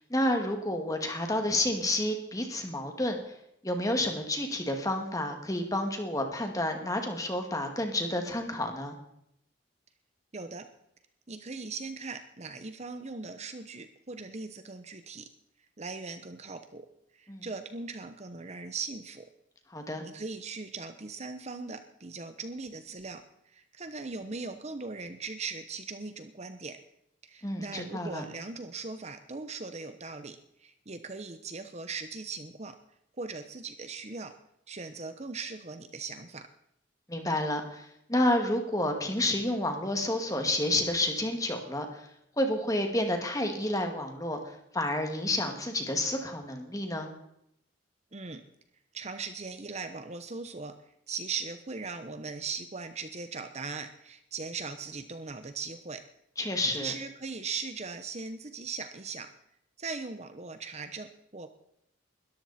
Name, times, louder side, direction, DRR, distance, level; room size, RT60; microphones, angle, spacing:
voice 1, 0.1-3.2 3.6-9.0 17.3-17.4 19.7-20.0 27.4-28.2 37.1-42.1 42.4-47.1 56.4-56.9, left 1 dB, 15° left, 4 dB, 2.2 m, -30 dB
voice 2, 10.3-10.7 11.3-15.3 15.8-16.9 17.1-19.3 20.0-26.8 27.2-32.8 33.2-34.3 34.7-36.5 48.1-48.4 48.9-50.7 51.1-56.0 56.8-59.3 59.8-61.5, right 4 dB, 35° right, 9 dB, 0.9 m, -39 dB
21.0 x 14.0 x 4.3 m, 0.77 s
head